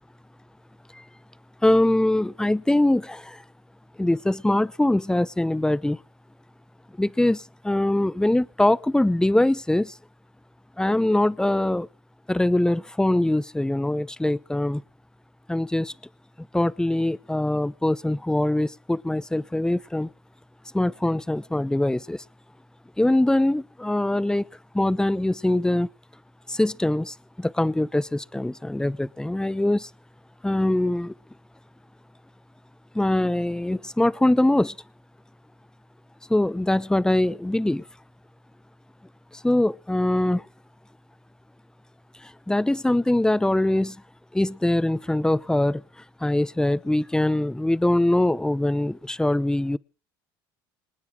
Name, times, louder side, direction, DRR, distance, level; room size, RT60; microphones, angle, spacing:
voice 1, 1.6-3.4 4.0-6.0 7.0-10.0 10.8-11.9 12.3-14.8 15.5-15.9 16.5-20.1 20.7-22.2 23.0-24.5 24.7-25.9 26.5-29.9 30.4-31.1 32.9-34.8 36.3-37.8 39.3-40.4 42.2-44.0 44.3-45.8 46.2-49.8, left 1 dB, 5° left, 20 dB, 0.9 m, -23 dB
27.5 x 9.4 x 4.9 m, 0.38 s
supercardioid pair, 80°, 12 cm